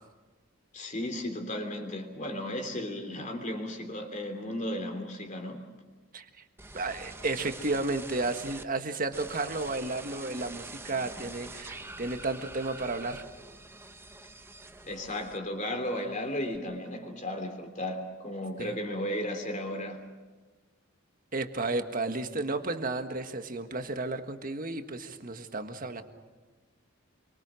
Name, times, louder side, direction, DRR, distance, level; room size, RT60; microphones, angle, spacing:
voice 1, 0.7-5.6 14.8-20.0, left 1 dB, 35° left, 5 dB, 3.1 m, -35 dB
sound 1, 6.6-8.6 9.1-15.7 16.0-16.6, right 2 dB, 10° right, 0.8 m, -45 dB
voice 2, 6.7-13.2 18.6-18.8 21.3-26.0, right 2 dB, 40° right, 7 dB, 1.6 m, -33 dB
27.5 x 24.0 x 6.3 m, 1.3 s
head